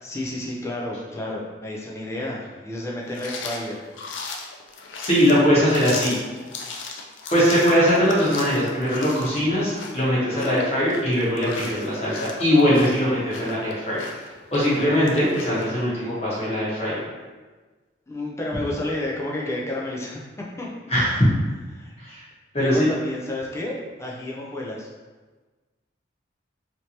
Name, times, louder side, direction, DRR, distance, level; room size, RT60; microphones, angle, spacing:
voice 1, 0.0-3.8 14.6-14.9 18.1-20.7 21.7-21.9 22.6-24.9, left 1 dB, 15° left, -3 dB, 0.4 m, -31 dB
sound 1, 3.1-15.7, left 4 dB, 80° left, 0.4 m, -37 dB
voice 2, 5.0-6.2 7.3-14.0 14.5-17.0 20.9-21.3 22.0-22.2 22.5-22.9, equal, 35° left, -8 dB, 1.0 m, -21 dB
3.2 x 2.8 x 2.8 m, 1.3 s
head